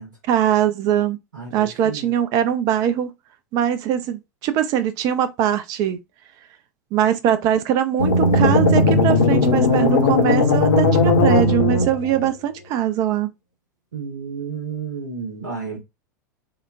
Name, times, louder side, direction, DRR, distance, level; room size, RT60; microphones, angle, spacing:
voice 1, 0.3-1.2 1.5-3.1 3.5-6.0 6.9-13.3, right 10 dB, 40° right, 0.4 m, -21 dB
voice 2, 1.3-2.1 13.9-15.8, right 5 dB, 75° right, 0.9 m, -32 dB
sound 1, 8.0-12.3, left 2 dB, 70° left, 0.6 m, -17 dB
3.8 x 2.1 x 2.4 m
figure-of-eight pair, 85°, 10 cm